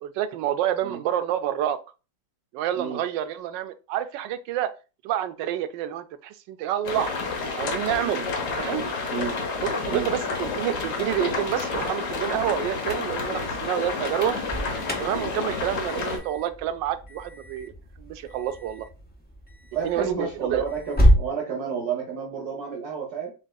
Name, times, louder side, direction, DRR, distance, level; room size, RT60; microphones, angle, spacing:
voice 1, 0.0-1.8 2.5-4.7 5.0-7.1 7.6-8.2 8.6-8.8 9.6-14.4 15.0-17.7 18.0-18.9 19.8-20.6, right 11 dB, 80° right, 1.2 m, -28 dB
sound 1, 6.8-16.2, left 4 dB, 50° left, 1.2 m, -30 dB
Alarm, 14.2-21.3, equal, 15° left, 0.3 m, -27 dB
voice 2, 19.7-23.3, right 6 dB, 60° right, 1.5 m, -30 dB
6.3 x 3.6 x 2.3 m
omnidirectional pair, 2.0 m